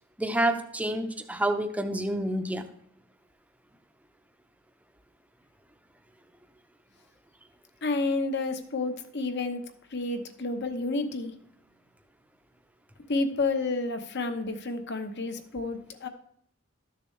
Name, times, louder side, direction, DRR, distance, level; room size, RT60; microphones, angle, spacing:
voice 1, 0.2-2.7, right 1 dB, 5° right, 7 dB, 0.6 m, -28 dB
voice 2, 7.8-9.6 9.9-11.3 13.1-16.1, left 3 dB, 55° left, 8 dB, 0.9 m, -30 dB
13.0 x 6.8 x 3.2 m, 0.71 s
head